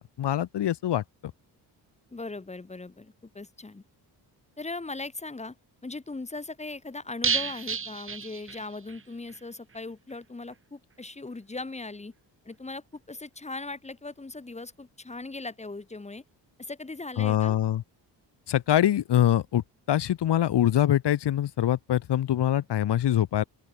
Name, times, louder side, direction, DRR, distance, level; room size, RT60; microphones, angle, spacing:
voice 1, 0.2-1.0 17.2-17.8 18.5-23.4, left 11 dB, 70° left, 5.5 m, -24 dB
voice 2, 2.1-3.8 4.6-5.5 5.8-12.1 12.4-16.2 16.6-17.6, left 3 dB, 15° left, 5.0 m, -39 dB
sound 1, 7.2-9.0 9.3-9.4 9.7-9.8, right 5 dB, 30° right, 4.0 m, -31 dB
open air
cardioid pair, 165°, 42 cm